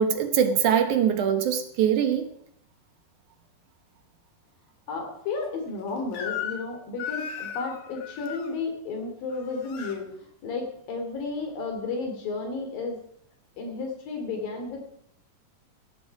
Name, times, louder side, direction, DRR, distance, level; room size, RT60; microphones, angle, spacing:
voice 1, 0.0-2.3, right 8 dB, 65° right, 7 dB, 2.4 m, -22 dB
voice 2, 4.9-13.0 13.6-14.9, left 4 dB, 75° left, 3 dB, 4.7 m, -33 dB
Crying sobbing / Screech, 6.1-6.7 7.0-8.5 9.3-10.0, left 8 dB, 55° left, 2.2 m, -35 dB
16.5 x 13.0 x 4.8 m, 0.68 s
omnidirectional pair, 4.1 m